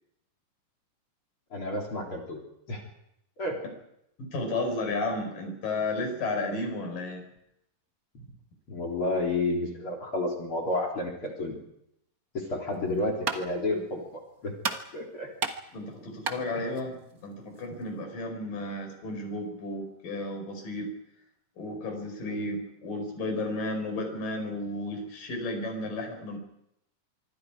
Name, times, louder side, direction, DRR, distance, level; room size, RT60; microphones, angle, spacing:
voice 1, 1.5-2.4 2.7-2.8 3.4-3.6 8.7-11.6 12.3-14.0 14.4-14.5 14.9-15.3 22.2-22.5, left 2 dB, 40° left, 2 dB, 4.3 m, -30 dB
voice 2, 4.2-7.3 15.7-20.9 21.6-22.6 22.8-26.4, left 2 dB, 75° left, 4 dB, 6.6 m, -33 dB
sound 1, 12.7-18.0, right 5 dB, 45° right, 1.1 m, -37 dB
25.5 x 24.0 x 4.9 m, 0.80 s
omnidirectional pair, 3.9 m